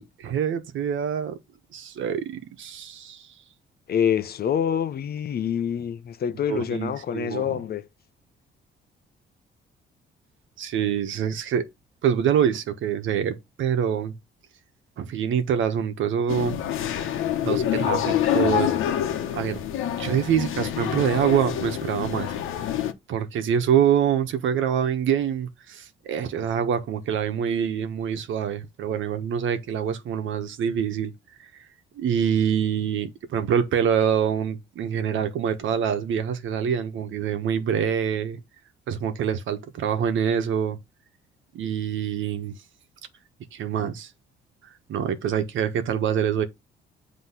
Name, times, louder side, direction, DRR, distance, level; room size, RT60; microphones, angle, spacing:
voice 1, 0.0-1.4 1.7-3.3 6.5-7.5 10.6-11.7 12.0-14.1 15.0-16.6 17.4-18.7 19.3-19.6 20.0-22.3 23.1-31.1 32.0-38.4 38.9-40.8 41.5-42.5 43.5-44.1 44.9-46.4, right 8 dB, 75° right, 1.1 m, -25 dB
voice 2, 3.9-7.9, left 8 dB, 50° left, 0.6 m, -26 dB
sound 1, 16.3-22.9, left 11 dB, 85° left, 1.0 m, -26 dB
7.9 x 3.1 x 5.7 m
cardioid pair, 90°, 20 cm